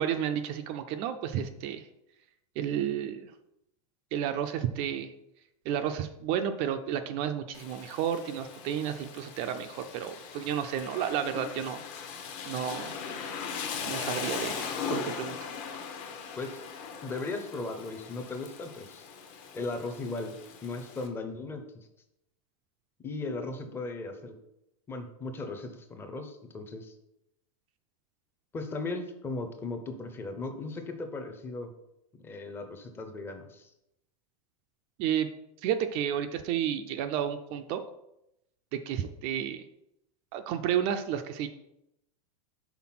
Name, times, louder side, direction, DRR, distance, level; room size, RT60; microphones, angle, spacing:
voice 1, 0.0-1.9 2.6-3.3 4.1-5.1 5.7-11.8 12.5-13.0 13.9-15.5 35.0-35.3 35.6-37.8 38.7-39.7 40.3-41.5, right 9 dB, 30° right, 8 dB, 0.4 m, -31 dB
Rain, 7.5-21.1, left 6 dB, 40° left, 0.9 m, -39 dB
voice 2, 17.0-19.1 19.5-20.4 20.6-21.6 23.0-24.3 24.9-26.9 28.5-31.7 32.2-33.7, left 3 dB, 10° left, 6 dB, 0.6 m, -37 dB
5.9 x 4.0 x 5.8 m, 0.84 s
supercardioid pair, 165°, 19 cm